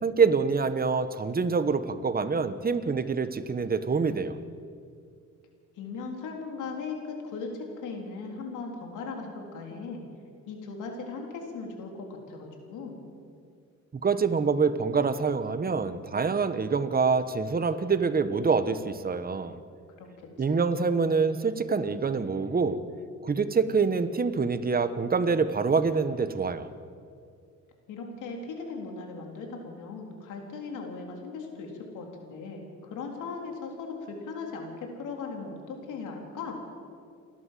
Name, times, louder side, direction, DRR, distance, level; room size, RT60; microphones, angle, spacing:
voice 1, 0.0-4.4 14.0-19.6 20.4-22.8 23.2-26.7, right 5 dB, 30° right, 11 dB, 1.3 m, -26 dB
voice 2, 5.8-10.1 10.5-13.0 20.0-20.6 27.9-36.6, left 4 dB, 85° left, 2 dB, 3.8 m, -38 dB
29.5 x 11.5 x 7.7 m, 2.3 s
cardioid pair, 90°, 30 cm